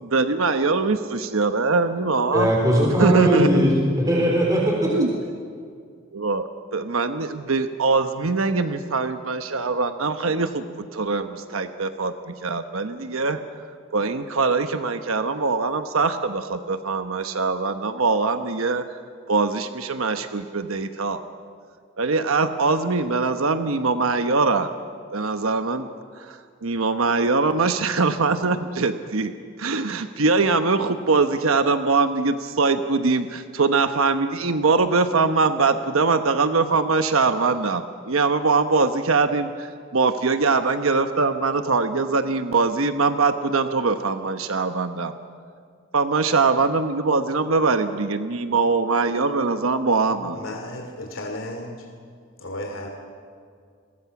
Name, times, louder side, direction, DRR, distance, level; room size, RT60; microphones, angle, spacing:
voice 1, 0.0-2.5 3.0-3.6 4.9-5.1 6.1-13.4 13.9-18.8 19.3-21.2 22.0-24.7 25.1-25.9 26.3-29.3 29.6-45.1 45.9-50.4, right 4 dB, 85° right, 8 dB, 1.0 m, -22 dB
voice 2, 2.3-3.7 4.0-4.9, equal, 20° right, -2 dB, 3.9 m, -19 dB
voice 3, 50.1-51.9 52.4-52.9, left 1 dB, 75° left, 2 dB, 2.8 m, -34 dB
30.0 x 22.5 x 6.0 m, 2.2 s
head